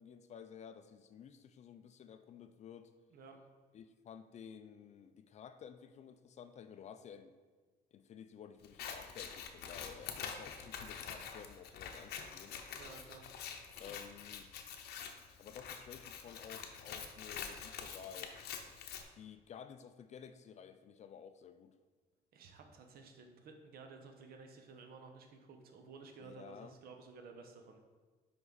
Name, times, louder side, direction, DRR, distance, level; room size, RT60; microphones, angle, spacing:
voice 1, 0.0-2.9 3.7-7.4 7.9-12.6 13.8-14.5 15.4-18.3 19.1-21.8 26.2-26.7, left 7 dB, 40° left, 10 dB, 0.4 m, -53 dB
Scissors, 8.6-19.0, left 7 dB, 70° left, 0.8 m, -46 dB
voice 2, 12.7-13.2 22.3-27.8, right 4 dB, 65° right, 4 dB, 1.0 m, -54 dB
5.8 x 5.3 x 4.0 m, 1.4 s
cardioid pair, 110°, 17 cm